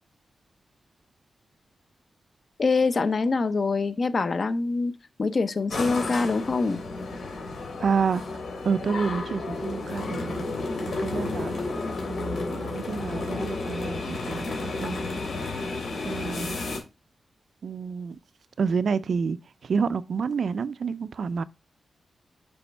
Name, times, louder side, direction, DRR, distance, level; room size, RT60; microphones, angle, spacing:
voice 1, 2.6-4.9 5.2-6.8, left 4 dB, 40° left, 0.6 m, -24 dB
sound 1, 5.7-16.8, left 3 dB, 80° left, 2.9 m, -32 dB
voice 2, 7.8-8.2 8.6-10.5 11.0-11.5 12.1-15.0 16.0-16.6 17.6-18.2 18.6-19.4 19.6-21.4, right 5 dB, 60° right, 0.4 m, -29 dB
7.0 x 5.2 x 3.3 m
wide cardioid pair, 160°, 0 cm